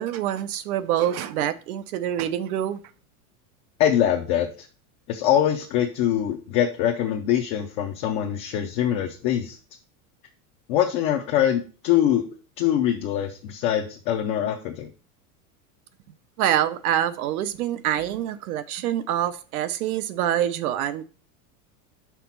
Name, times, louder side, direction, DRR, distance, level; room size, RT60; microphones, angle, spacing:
voice 1, 0.0-2.8 16.4-21.0, right 11 dB, 75° right, 0.8 m, -26 dB
voice 2, 3.8-4.5 5.1-9.6 10.7-12.2 12.6-14.9, left 10 dB, 30° left, 0.5 m, -23 dB
5.9 x 4.0 x 5.7 m
supercardioid pair, 170°, 44 cm